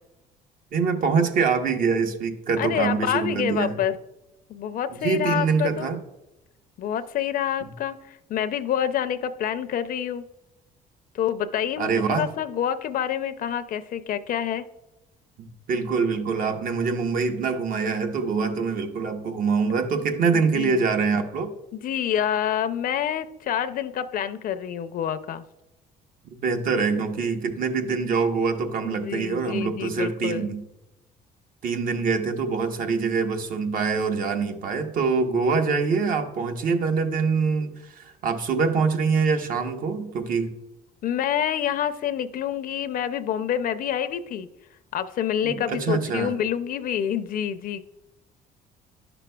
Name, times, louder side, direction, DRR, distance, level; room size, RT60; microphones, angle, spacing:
voice 1, 0.7-3.8 5.0-6.0 11.8-12.3 15.4-21.5 26.3-30.6 31.6-40.5 45.4-46.4, right 5 dB, 55° right, 6 dB, 1.0 m, -24 dB
voice 2, 2.6-4.0 4.5-5.9 6.8-10.2 11.1-14.7 20.3-20.8 21.7-25.4 28.8-30.5 41.0-44.5 44.9-47.9, left 9 dB, 55° left, 11 dB, 0.5 m, -27 dB
11.0 x 6.0 x 2.3 m, 0.93 s
cardioid pair, 110°, 17 cm